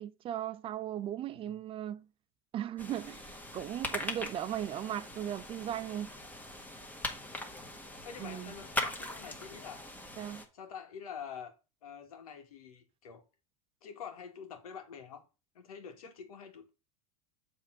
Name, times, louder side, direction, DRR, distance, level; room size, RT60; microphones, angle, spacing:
voice 1, 0.0-2.1 2.5-6.1 8.2-8.5 10.2-10.4, right 11 dB, 30° right, 0.4 m, -37 dB
sound 1, 2.8-10.5, left 1 dB, 10° left, 1.7 m, -41 dB
voice 2, 7.3-7.7 8.0-9.9 10.5-11.5 11.8-13.2 13.8-15.2 15.5-16.7, left 7 dB, 80° left, 2.0 m, -47 dB
7.3 x 3.7 x 6.4 m
hypercardioid pair, 105°, 18 cm